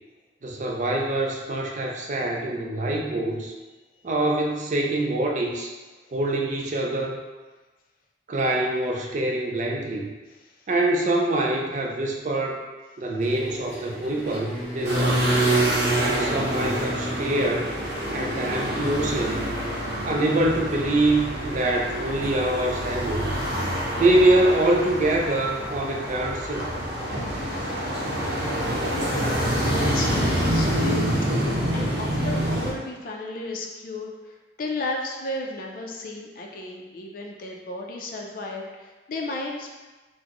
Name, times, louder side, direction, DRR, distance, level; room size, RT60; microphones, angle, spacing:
voice 1, 0.4-3.5 4.0-5.7 6.1-7.2 8.3-10.1 10.7-12.6 13.0-15.3 15.9-17.7 18.1-19.5 20.0-23.3 23.9-26.7, right 1 dB, 40° right, 0 dB, 0.4 m, -24 dB
sound 1, 13.2-19.0, equal, 10° left, 1.3 m, -39 dB
Bowed string instrument, 14.0-18.3, left 1 dB, 10° right, 1.0 m, -36 dB
sound 2, 14.8-32.7, right 1 dB, 60° right, 0.7 m, -26 dB
voice 2, 29.5-39.8, left 2 dB, 45° left, 0 dB, 0.4 m, -34 dB
4.0 x 2.0 x 2.9 m, 1.2 s
head